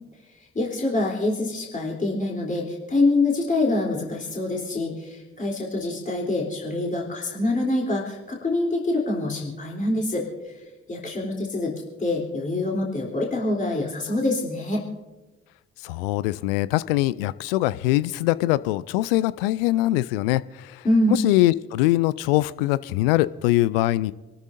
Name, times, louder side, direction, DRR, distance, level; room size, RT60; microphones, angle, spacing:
voice 1, 0.6-10.6 10.9-11.7 12.0-14.8 20.8-21.2, left 2 dB, 25° left, -2 dB, 3.6 m, -25 dB
voice 2, 15.8-24.1, left 16 dB, 70° left, 19 dB, 0.5 m, -22 dB
27.5 x 13.5 x 2.7 m, 1.1 s
figure-of-eight pair, 45°, 29 cm